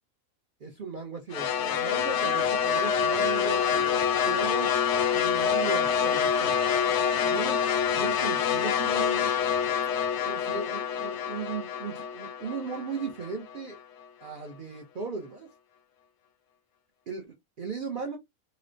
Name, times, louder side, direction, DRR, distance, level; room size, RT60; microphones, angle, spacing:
voice 1, 0.6-4.7 5.1-6.6 7.3-7.6 7.9-9.3 10.2-13.8 14.2-15.5 17.1-18.2, right 4 dB, 55° right, 0.6 m, -37 dB
sound 1, 1.3-13.6, left 7 dB, 65° left, 0.7 m, -26 dB
4.2 x 2.0 x 2.5 m
omnidirectional pair, 1.5 m